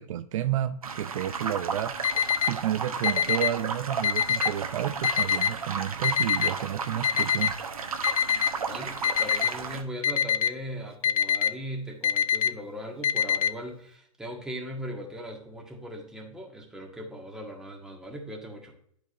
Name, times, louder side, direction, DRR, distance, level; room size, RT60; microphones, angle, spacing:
voice 1, 0.0-2.0 2.4-7.6, right 12 dB, 65° right, 0.5 m, -31 dB
sound 1, 0.8-9.8, right 5 dB, 85° right, 1.0 m, -34 dB
Alarm, 2.0-2.5 3.0-3.5 4.0-4.5 5.0-5.5 6.0-6.5 7.0-7.5 8.0-8.5 9.0-9.5 10.0-10.5 11.0-11.5 12.0-12.5 13.0-13.5, left 9 dB, 75° left, 0.5 m, -23 dB
voice 2, 8.7-18.7, equal, 5° right, 1.6 m, -39 dB
10.5 x 5.0 x 2.5 m
hypercardioid pair, 110°, 18 cm